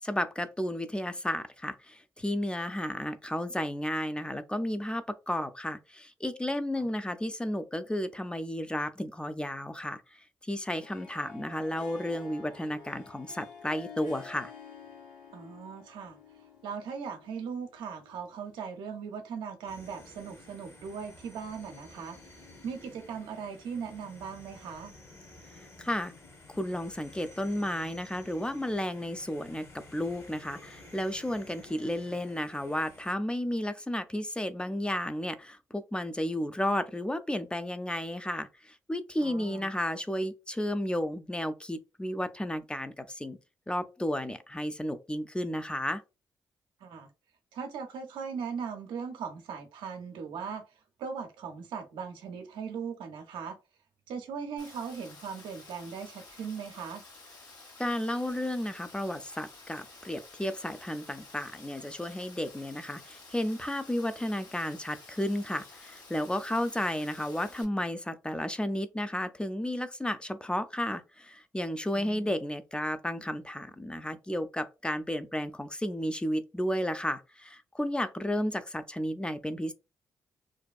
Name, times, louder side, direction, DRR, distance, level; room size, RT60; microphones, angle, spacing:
voice 1, 0.0-10.2 10.5-14.5 25.8-26.1 26.5-29.7 29.9-43.4 43.7-46.0 57.8-79.7, left 1 dB, 10° left, 0.4 m, -33 dB
Harp, 10.7-19.0, left 6 dB, 85° left, 0.6 m, -50 dB
voice 2, 15.3-16.2 16.6-22.2 22.6-24.9 39.2-39.7 46.8-47.1 47.5-50.6 51.0-53.6 54.1-57.0 71.9-72.3, right 6 dB, 80° right, 0.5 m, -39 dB
sound 1, 19.7-33.2, left 2 dB, 35° left, 0.9 m, -52 dB
Rain, 54.6-67.6, left 3 dB, 65° left, 1.2 m, -51 dB
2.6 x 2.3 x 2.3 m
hypercardioid pair, 45°, 8 cm